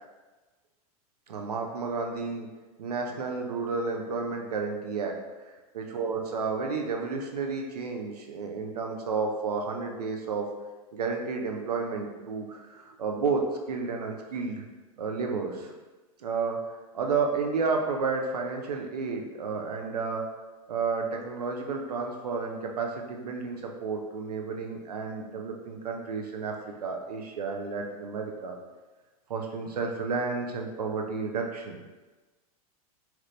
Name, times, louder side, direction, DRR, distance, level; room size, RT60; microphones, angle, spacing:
voice 1, 1.3-2.5 2.8-5.2 5.8-10.5 10.9-14.6 15.0-15.7 16.2-16.6 16.9-20.3 20.7-28.6 29.3-31.8, right 4 dB, 90° right, 2 dB, 0.5 m, -31 dB
3.0 x 2.5 x 3.2 m, 1.2 s
hypercardioid pair, 105°, 19 cm